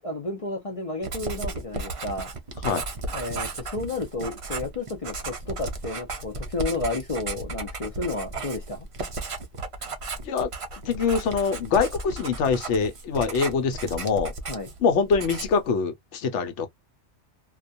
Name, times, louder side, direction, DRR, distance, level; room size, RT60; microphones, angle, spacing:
voice 1, 0.0-2.3 3.1-8.9 14.5-14.7, left 2 dB, 45° left, 0.5 m, -32 dB
Writing, 1.0-14.8 15.1-15.7, right 3 dB, 45° right, 0.4 m, -34 dB
voice 2, 10.9-14.3 14.8-16.7, left 5 dB, 80° left, 1.0 m, -24 dB
2.3 x 2.2 x 2.6 m
omnidirectional pair, 1.2 m